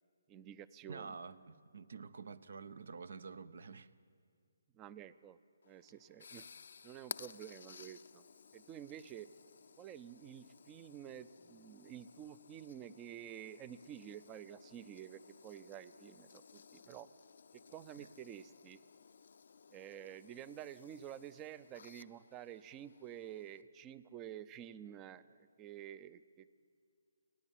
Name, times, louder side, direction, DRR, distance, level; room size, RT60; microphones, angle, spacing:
voice 1, 0.3-1.2 4.7-5.4 5.7-6.5 6.8-8.2 8.5-9.3 9.8-17.1 17.7-18.8 19.7-26.5, right 10 dB, 20° right, 0.5 m, -50 dB
voice 2, 0.9-3.9 18.0-18.1, right 5 dB, 65° right, 0.7 m, -49 dB
sound 1, 5.6-23.6, left 6 dB, 60° left, 0.5 m, -57 dB
29.0 x 9.9 x 9.0 m
figure-of-eight pair, 145°, 0 cm